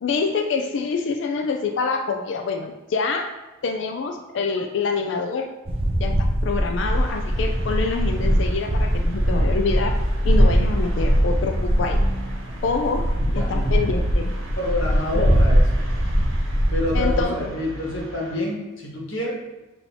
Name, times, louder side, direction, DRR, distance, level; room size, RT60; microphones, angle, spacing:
voice 1, 0.0-3.3 3.6-5.5 6.0-9.9 10.2-12.0 12.6-13.0 13.4-14.3 15.1-15.3 16.9-17.5, left 4 dB, 65° left, 3 dB, 0.3 m, -26 dB
sound 1, 5.7-17.2, equal, 30° right, 0.4 m, -21 dB
sound 2, 6.8-18.4, right 1 dB, 85° right, 0.8 m, -41 dB
sound 3, 12.4-18.0, left 3 dB, 55° right, 0.9 m, -42 dB
voice 2, 12.9-13.9 14.6-15.8 16.7-19.3, left 1 dB, 80° left, -3 dB, 1.2 m, -28 dB
6.9 x 2.7 x 2.8 m, 1.1 s
head